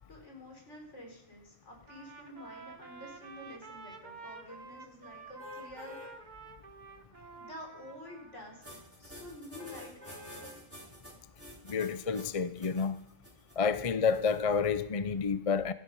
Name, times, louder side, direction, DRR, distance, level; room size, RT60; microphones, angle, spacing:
voice 1, 0.1-6.1 7.3-10.5, left 1 dB, 70° left, 4.7 m, -49 dB
Trumpet, 1.8-8.8, right 4 dB, 35° right, 1.3 m, -50 dB
sound 1, 5.4-6.1 6.6-6.8 9.6-10.5 11.1-11.2, left 4 dB, 5° left, 6.3 m, -48 dB
ae radiation, 8.6-14.7, equal, 10° right, 4.1 m, -50 dB
voice 2, 11.6-13.0 13.6-15.7, left 5 dB, 35° left, 0.6 m, -29 dB
17.5 x 14.0 x 5.5 m
omnidirectional pair, 1.3 m